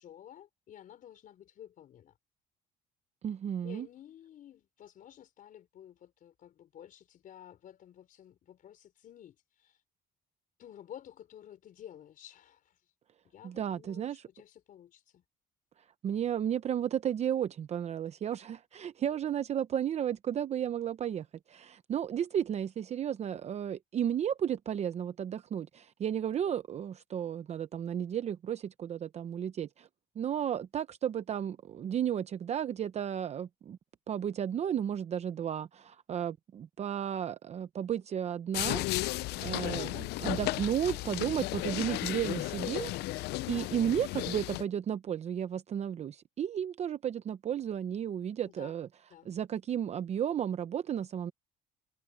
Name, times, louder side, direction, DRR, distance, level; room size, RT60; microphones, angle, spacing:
voice 1, 0.0-2.1 3.6-9.8 10.6-12.8 13.2-15.2 38.6-39.1 39.6-40.0 43.5-43.7 48.4-48.7 49.1-49.3, left 10 dB, 55° left, 4.6 m, -52 dB
voice 2, 3.2-3.9 13.4-14.2 16.0-29.9 30.2-33.8 34.1-38.8 39.4-42.9 43.5-48.9 49.3-51.3, right 9 dB, 40° right, 0.7 m, -33 dB
sound 1, 38.5-44.6, left 19 dB, 75° left, 0.5 m, -34 dB
cardioid pair, 130°, 17 cm